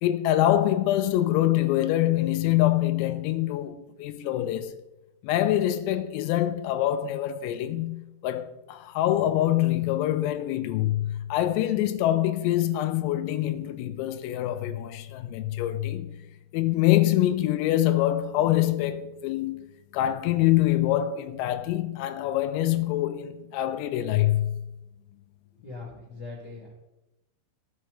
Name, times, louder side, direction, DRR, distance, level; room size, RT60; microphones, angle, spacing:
voice 1, 0.0-4.8 5.2-16.1 16.5-19.7 19.9-24.6, left 13 dB, 85° left, 3.3 m, -25 dB
voice 2, 25.6-26.7, left 3 dB, 55° left, 1.1 m, -41 dB
16.0 x 5.7 x 3.2 m
omnidirectional pair, 6.0 m